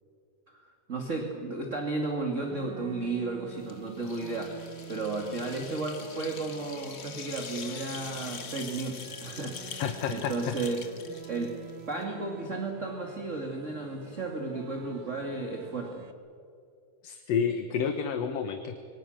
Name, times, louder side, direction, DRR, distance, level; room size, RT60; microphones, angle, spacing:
voice 1, 0.5-4.6 4.9-10.8 11.3-11.5 11.9-16.0, right 3 dB, 25° right, 2 dB, 2.3 m, -34 dB
sound 1, 2.4-16.1, right 8 dB, 50° right, 1.5 m, -48 dB
sound 2, 3.6-12.0, left 6 dB, 40° left, 1.2 m, -44 dB
voice 2, 9.8-10.6 17.0-18.8, left 7 dB, 60° left, 7 dB, 2.1 m, -30 dB
27.0 x 24.0 x 6.6 m, 2.4 s
omnidirectional pair, 3.5 m